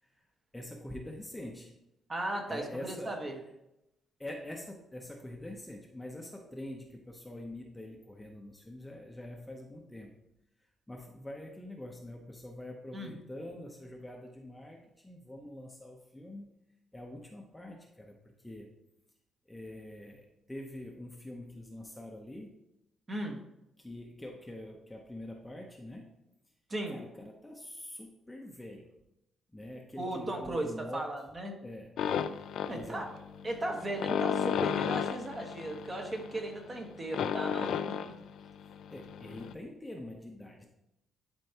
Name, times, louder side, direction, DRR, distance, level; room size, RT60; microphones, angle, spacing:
voice 1, 0.5-1.8 2.5-3.1 4.2-10.1 10.9-16.5 16.9-18.7 19.5-22.5 23.8-26.1 26.4-26.5 26.9-28.9 29.5-31.1 31.5-31.9 32.7-33.1 38.6-40.7, left 1 dB, 5° left, 1 dB, 0.8 m, -45 dB
voice 2, 2.1-3.4 12.9-13.2 23.1-23.4 26.7-27.0 30.0-31.6 32.7-33.1 33.4-38.1, right 1 dB, 25° right, 2 dB, 1.3 m, -36 dB
sound 1, 32.0-39.5, left 8 dB, 70° left, 0.4 m, -34 dB
11.5 x 4.5 x 2.9 m, 0.88 s
cardioid pair, 125°, 0 cm